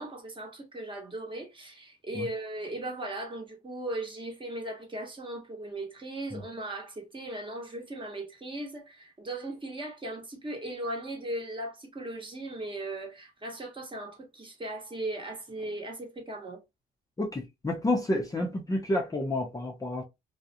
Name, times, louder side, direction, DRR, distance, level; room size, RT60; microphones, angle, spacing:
voice 1, 0.0-16.6, right 1 dB, 25° right, 1.0 m, -38 dB
voice 2, 17.2-20.0, left 1 dB, 15° left, 0.6 m, -29 dB
2.3 x 2.1 x 2.7 m
cardioid pair, 90°, 20 cm